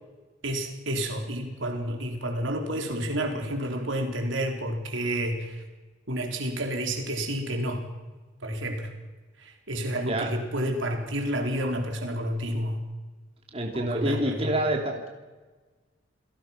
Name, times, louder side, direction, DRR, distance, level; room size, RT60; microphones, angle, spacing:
voice 1, 0.4-5.6 6.1-7.9 8.4-8.9 9.4-12.8 13.7-14.5, right 1 dB, 80° right, 3 dB, 4.2 m, -30 dB
voice 2, 13.5-15.1, right 1 dB, 30° right, 1 dB, 2.9 m, -27 dB
29.5 x 18.5 x 6.0 m, 1.3 s
head